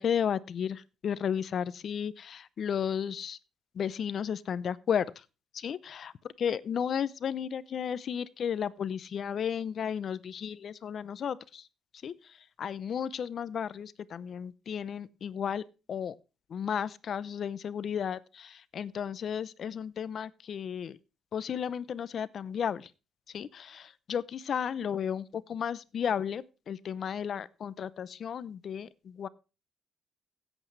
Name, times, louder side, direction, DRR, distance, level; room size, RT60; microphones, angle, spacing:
voice 1, 0.0-3.4 3.8-5.1 5.5-6.1 6.4-11.6 12.0-12.1 12.6-15.6 15.9-16.1 16.5-21.0 21.3-22.9 23.3-29.3, left 8 dB, 55° left, 19 dB, 0.7 m, -33 dB
16.0 x 8.1 x 3.3 m, 0.31 s
cardioid pair, 90°, 0 cm